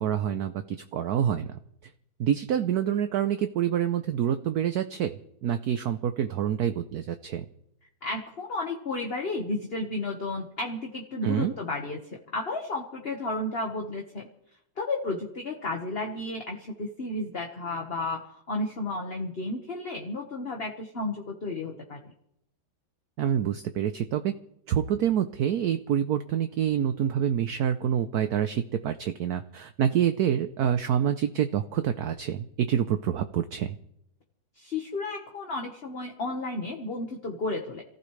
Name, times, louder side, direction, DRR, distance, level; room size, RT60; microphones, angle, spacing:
voice 1, 0.0-1.5 2.2-5.1 5.4-7.4 11.2-11.5 23.2-24.3 24.7-33.7, right 9 dB, 65° right, 9 dB, 1.1 m, -27 dB
voice 2, 8.0-14.3 14.8-18.2 18.5-22.1 34.6-37.8, left 2 dB, 35° left, 1 dB, 1.6 m, -33 dB
27.0 x 15.5 x 3.3 m, 0.75 s
omnidirectional pair, 2.1 m